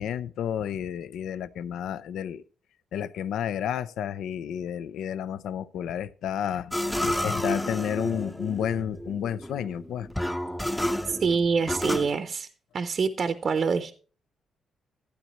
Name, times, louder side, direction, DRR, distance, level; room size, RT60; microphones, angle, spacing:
voice 1, 0.0-2.4 2.9-10.1, left 9 dB, 80° left, 0.5 m, -31 dB
sound 1, 6.7-12.1, left 1 dB, 5° left, 0.6 m, -31 dB
voice 2, 11.1-12.5 12.7-13.9, right 5 dB, 45° right, 0.6 m, -25 dB
12.0 x 10.0 x 3.0 m
cardioid pair, 125°, 0 cm